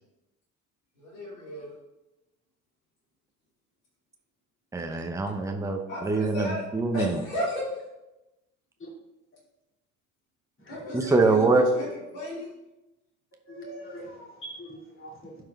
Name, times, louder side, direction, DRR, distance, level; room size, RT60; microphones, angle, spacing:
voice 1, 1.0-1.7 5.9-6.6 6.9-7.6 10.7-11.4 11.7-11.9 12.1-12.5, equal, 75° left, -6 dB, 2.6 m, -34 dB
voice 2, 4.7-7.2 10.9-11.7, right 3 dB, 10° right, 4 dB, 0.7 m, -24 dB
voice 3, 10.7-11.1 13.5-15.4, equal, 30° left, -4 dB, 2.6 m, -42 dB
11.5 x 4.8 x 2.4 m, 0.99 s
figure-of-eight pair, 55°, 41 cm